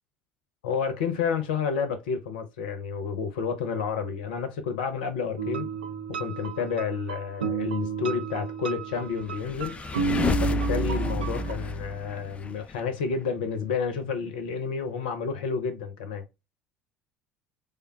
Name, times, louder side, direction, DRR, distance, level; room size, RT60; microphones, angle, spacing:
voice 1, 0.6-5.7 6.1-9.7 10.4-16.2, left 6 dB, 70° left, 0.6 m, -30 dB
sound 1, 5.4-11.5, right 4 dB, 80° right, 0.5 m, -32 dB
sound 2, 9.2-12.8, left 2 dB, 25° left, 0.4 m, -30 dB
3.4 x 2.2 x 3.4 m
figure-of-eight pair, 65°, 5 cm